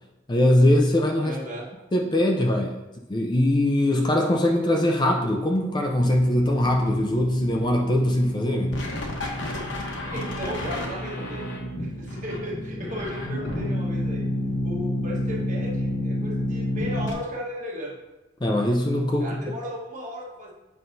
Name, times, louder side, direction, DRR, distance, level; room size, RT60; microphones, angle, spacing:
voice 1, 0.3-1.4 1.9-2.8 3.1-8.9 18.4-19.4, left 1 dB, 20° left, 1 dB, 0.4 m, -21 dB
voice 2, 1.2-1.7 10.1-11.4 11.8-14.2 14.6-18.0 19.2-20.5, equal, 40° right, -3 dB, 1.3 m, -35 dB
sound 1, 6.0-17.1, left 1 dB, 65° left, 1.0 m, -30 dB
7.5 x 5.5 x 2.7 m, 1.0 s
head